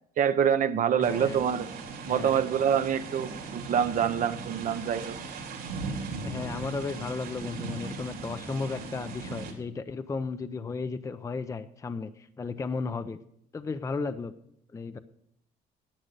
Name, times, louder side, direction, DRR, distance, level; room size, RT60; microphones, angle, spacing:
voice 1, 0.2-1.7 2.0-5.2, right 8 dB, 50° right, 11 dB, 0.7 m, -26 dB
voice 2, 1.0-1.4 2.1-2.5 6.2-13.2 13.5-14.3 14.7-15.0, left 4 dB, 20° left, 11 dB, 0.5 m, -34 dB
sound 1, 1.0-9.5, right 4 dB, 80° right, 3.0 m, -38 dB
10.0 x 8.8 x 6.6 m, 0.72 s
cardioid pair, 110°, 17 cm